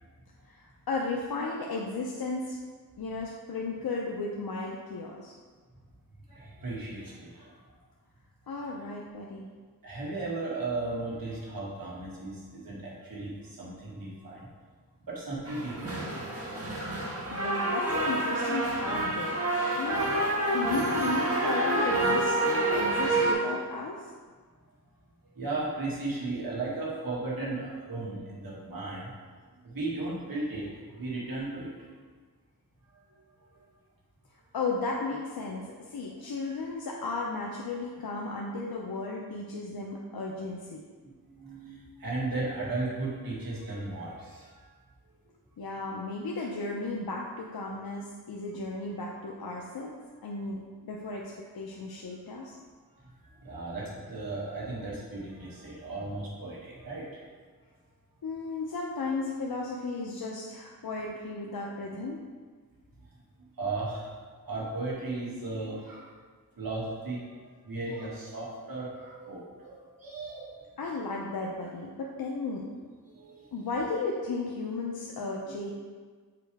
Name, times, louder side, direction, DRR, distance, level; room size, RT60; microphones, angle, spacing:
voice 1, 0.5-2.6 3.0-5.3 8.5-9.5 17.3-20.1 20.5-24.1 34.5-40.8 45.6-50.0 50.2-51.2 51.5-52.5 58.2-62.2 70.8-72.7 73.5-75.7, left 3 dB, 75° left, -2 dB, 0.7 m, -34 dB
voice 2, 6.3-7.5 8.5-8.7 9.8-14.5 15.1-16.3 16.6-16.7 17.2-17.6 19.7-19.8 25.3-29.1 29.6-31.8 41.0-44.7 51.2-51.3 52.3-52.5 53.0-57.1 63.4-64.1 64.4-66.1 66.6-67.3 67.6-70.5 73.1-73.7 75.4-75.6, right 2 dB, 65° right, -6 dB, 1.9 m, -36 dB
sound 1, 15.5-23.3, right 2 dB, 40° right, 1.4 m, -28 dB
6.8 x 4.8 x 3.5 m, 1.5 s
wide cardioid pair, 80°, 37 cm